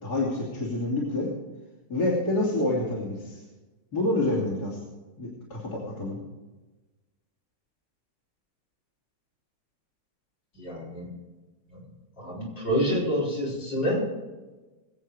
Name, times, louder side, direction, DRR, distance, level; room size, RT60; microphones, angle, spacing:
voice 1, 0.0-1.3 1.9-3.4 3.9-4.8 5.2-6.2, left 2 dB, 60° left, -4 dB, 3.5 m, -27 dB
voice 2, 10.6-11.0 12.2-14.0, equal, 85° left, -6 dB, 5.8 m, -27 dB
21.5 x 8.4 x 4.8 m, 1.2 s
omnidirectional pair, 1.9 m